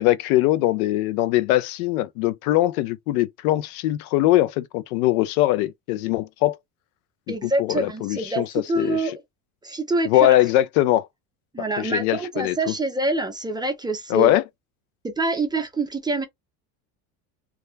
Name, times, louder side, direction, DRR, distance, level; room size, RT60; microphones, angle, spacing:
voice 1, 0.0-6.6 7.3-8.5 8.8-9.0 10.0-11.1 11.8-12.7 14.1-14.4, left 15 dB, 85° left, 0.5 m, -21 dB
voice 2, 7.3-9.2 9.6-10.4 11.5-14.3 15.0-16.3, right 2 dB, 10° right, 0.4 m, -26 dB
2.3 x 2.1 x 3.1 m
supercardioid pair, 100°, 43 cm